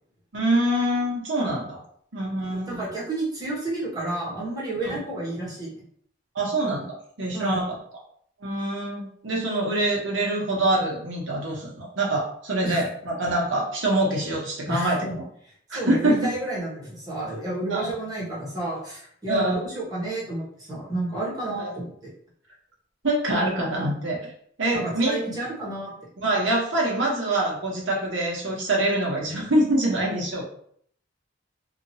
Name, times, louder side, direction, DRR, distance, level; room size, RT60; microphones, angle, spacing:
voice 1, 0.3-1.8 2.1-2.8 4.8-5.0 6.3-7.7 8.4-15.2 15.7-16.3 17.7-17.9 19.3-19.7 21.5-21.7 23.0-24.2 24.6-25.2 26.2-30.4, right 1 dB, 80° right, -2 dB, 1.0 m, -25 dB
voice 2, 2.5-5.8 7.3-7.6 12.6-12.8 14.7-15.1 15.7-21.9 24.7-25.9, right 1 dB, 20° right, -6 dB, 1.2 m, -31 dB
2.8 x 2.5 x 2.8 m, 0.63 s
head